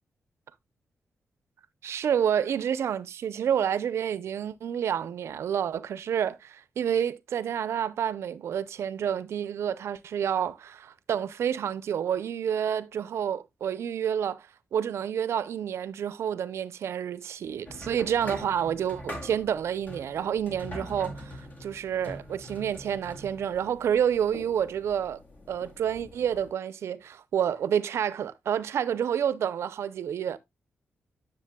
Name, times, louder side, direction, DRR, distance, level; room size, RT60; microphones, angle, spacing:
voice 1, 1.8-14.5 14.7-25.2 25.5-30.4, right 8 dB, 80° right, 0.6 m, -29 dB
sound 1, 17.7-26.5, left 1 dB, 40° left, 2.2 m, -43 dB
10.0 x 6.5 x 2.2 m
cardioid pair, 100°, 5 cm